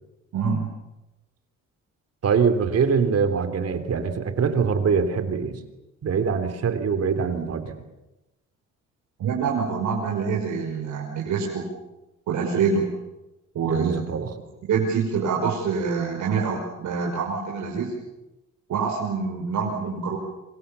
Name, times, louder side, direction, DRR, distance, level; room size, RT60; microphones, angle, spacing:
voice 1, 0.3-0.7 9.2-11.7 12.3-12.9 13.5-14.0 14.7-17.9 18.7-20.2, right 5 dB, 75° right, -1 dB, 5.8 m, -25 dB
voice 2, 2.2-5.6 6.0-7.8 13.6-14.4, right 6 dB, 55° right, 9 dB, 3.9 m, -23 dB
27.0 x 26.5 x 7.2 m, 0.99 s
cardioid pair, 90°, 30 cm